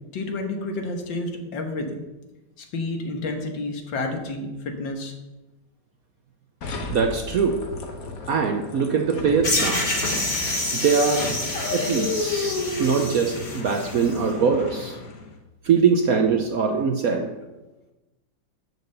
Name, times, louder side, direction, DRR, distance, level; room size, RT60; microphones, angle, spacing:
voice 1, 0.1-2.0 2.6-5.1, left 2 dB, 70° left, 4 dB, 2.0 m, -30 dB
sound 1, 6.6-15.3, left 3 dB, 50° left, 1.4 m, -32 dB
voice 2, 6.9-7.6 8.3-9.8 10.1-10.2 10.7-11.3 11.7-15.0 15.6-17.3, right 5 dB, 60° right, 4 dB, 1.0 m, -22 dB
sound 2, 9.4-14.2, left 1 dB, 30° left, 2.0 m, -28 dB
8.1 x 6.6 x 6.7 m, 1.1 s
omnidirectional pair, 2.1 m